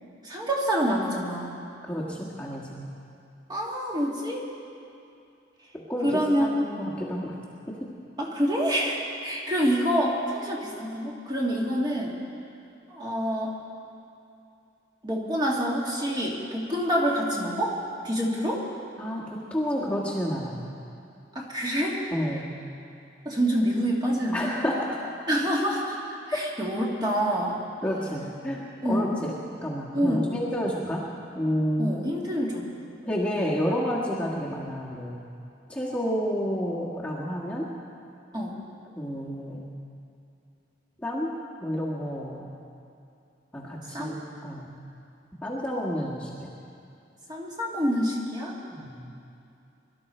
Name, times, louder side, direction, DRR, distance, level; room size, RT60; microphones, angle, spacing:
voice 1, 0.2-1.5 3.5-4.4 6.0-6.6 8.2-12.1 12.9-13.5 15.0-18.6 21.4-22.0 23.3-24.5 25.3-27.6 28.8-29.1 29.9-30.4 31.8-32.7 38.3-38.6 43.9-44.2 47.3-48.5, equal, 20° right, -3 dB, 2.0 m, -27 dB
voice 2, 1.9-2.8 5.9-7.4 7.7-7.8 19.0-20.6 22.1-22.5 24.3-24.8 27.8-29.3 29.6-31.0 31.3-31.9 33.0-35.2 35.7-37.7 38.9-39.7 41.0-41.3 41.6-42.5 43.5-44.7 45.4-46.3 48.7-49.1, equal, 5° left, -6 dB, 1.5 m, -30 dB
23.5 x 12.5 x 4.4 m, 2.6 s
head